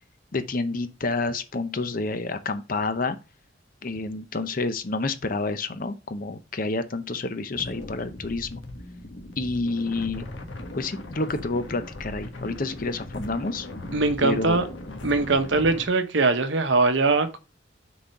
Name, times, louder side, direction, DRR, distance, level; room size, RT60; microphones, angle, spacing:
voice 1, 0.3-3.2 3.8-8.6 9.4-10.3 10.8-13.7 14.2-14.6, left 3 dB, 45° left, 0.7 m, -29 dB
sound 1, 7.5-15.8, left 1 dB, 75° left, 1.4 m, -38 dB
voice 2, 13.9-14.7 15.0-17.4, right 3 dB, 70° right, 0.9 m, -22 dB
6.2 x 3.9 x 5.7 m
head